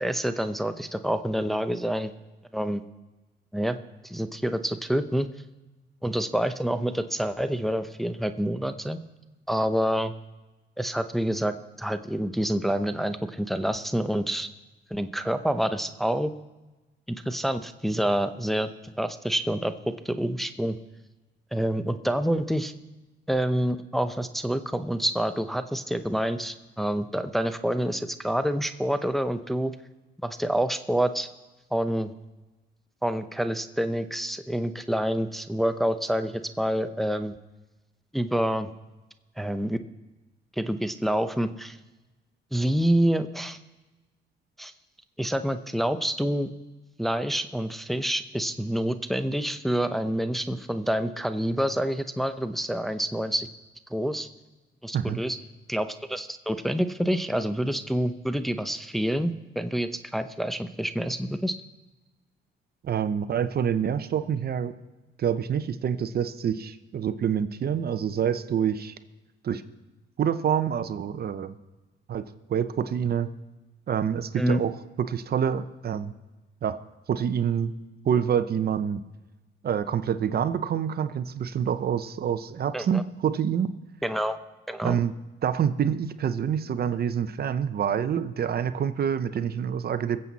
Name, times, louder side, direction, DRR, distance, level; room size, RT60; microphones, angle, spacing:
voice 1, 0.0-2.1 2.5-2.8 3.5-3.8 4.0-5.3 6.0-9.0 9.5-10.1 10.8-14.5 14.9-16.3 17.1-18.7 19.0-20.8 21.5-22.7 23.3-29.7 30.2-31.3 31.7-32.1 33.0-37.4 38.1-38.7 39.4-39.8 40.6-41.8 42.5-43.6 44.6-44.7 45.2-46.5 47.0-53.5 53.9-54.3 54.8-55.4 55.7-61.5 74.3-74.6 82.7-83.0 84.0-84.4 84.7-85.0, right 1 dB, ahead, 8 dB, 0.7 m, -27 dB
voice 2, 62.8-64.7 65.2-68.9 69.4-69.6 70.2-71.5 72.1-72.2 72.5-73.3 73.9-76.1 76.6-76.8 77.1-77.7 78.0-79.0 79.6-83.7 84.8-85.1 85.4-90.2, right 8 dB, 50° right, 12 dB, 0.7 m, -27 dB
22.0 x 7.7 x 4.1 m, 1.1 s
cardioid pair, 90°, 20 cm